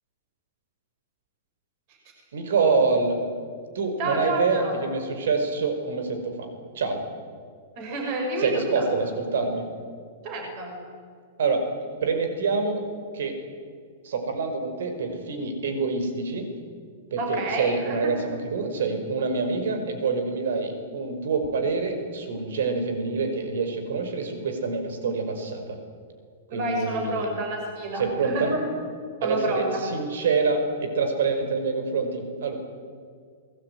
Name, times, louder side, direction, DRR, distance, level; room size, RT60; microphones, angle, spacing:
voice 1, 2.3-3.2 3.7-7.0 8.4-9.7 11.4-11.6 12.0-12.8 13.1-13.3 14.0-16.5 17.1-25.8 26.5-27.3 28.0-28.5 29.2-32.6, right 4 dB, 75° right, 7 dB, 5.4 m, -26 dB
voice 2, 4.0-4.8 7.8-8.9 10.2-10.7 17.2-18.1 26.5-28.6 29.2-29.7, right 1 dB, 30° right, 1 dB, 6.0 m, -29 dB
27.0 x 20.5 x 9.5 m, 2.1 s
supercardioid pair, 175°, 0 cm